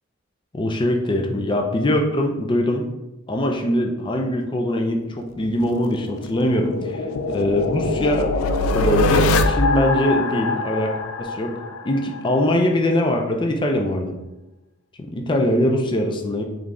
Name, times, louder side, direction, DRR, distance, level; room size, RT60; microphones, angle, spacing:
voice 1, 0.5-2.9 3.3-8.3 8.7-10.9 11.2-11.5 11.8-14.1 15.0-16.4, left 1 dB, 25° left, 2 dB, 0.4 m, -22 dB
sound 1, 5.4-12.3, left 2 dB, 85° left, 0.4 m, -23 dB
3.7 x 3.2 x 3.7 m, 0.99 s
head